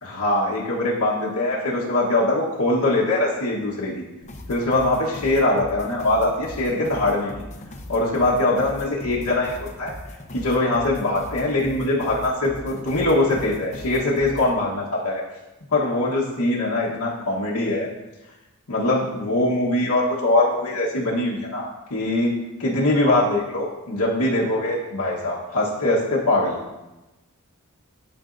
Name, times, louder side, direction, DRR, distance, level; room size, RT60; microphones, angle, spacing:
voice 1, 0.0-4.1 4.5-7.4 7.9-9.5 9.8-9.9 10.3-15.2 15.7-17.9 18.7-22.3 22.6-26.6, left 2 dB, 85° left, -5 dB, 1.2 m, -22 dB
sound 1, 4.2-14.5, left 1 dB, 30° left, 0.7 m, -39 dB
11.5 x 5.1 x 2.6 m, 1.0 s
head